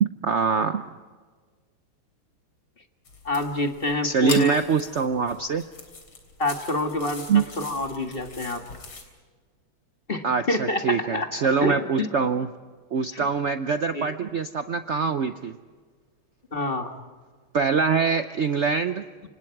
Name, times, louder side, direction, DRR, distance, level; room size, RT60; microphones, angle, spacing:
voice 1, 0.0-0.9 4.0-5.6 7.3-7.4 10.2-12.5 12.9-15.6 17.5-19.0, right 5 dB, 75° right, 9 dB, 0.6 m, -24 dB
sound 1, 3.1-9.0, left 4 dB, 85° left, 4.4 m, -41 dB
voice 2, 3.2-4.6 6.4-8.6 10.1-11.3 11.6-12.1 13.1-13.2 13.9-14.1 16.5-16.9, left 1 dB, 30° left, 5 dB, 1.9 m, -27 dB
29.0 x 26.0 x 4.7 m, 1.5 s
omnidirectional pair, 2.3 m